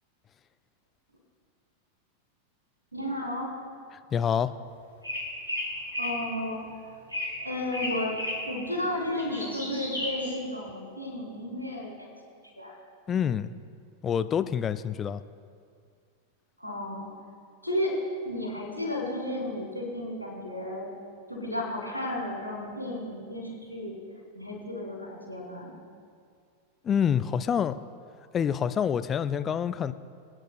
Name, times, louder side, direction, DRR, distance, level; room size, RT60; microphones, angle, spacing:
voice 1, 2.9-3.5 6.0-6.6 7.4-8.2 8.5-12.7 16.6-17.1 17.6-18.0 18.2-20.9 21.3-23.9 24.3-25.7, left 1 dB, 90° right, -3 dB, 2.8 m, -33 dB
voice 2, 4.1-4.5 13.1-13.5 14.0-15.2 26.8-27.8 28.3-29.9, left 8 dB, 25° left, 12 dB, 0.4 m, -27 dB
sound 1, 5.0-6.2 7.1-7.4 7.7-8.5 8.9-10.3, left 1 dB, 90° left, 2.2 m, -33 dB
26.5 x 9.0 x 2.2 m, 2.2 s
figure-of-eight pair, 90°, 0 cm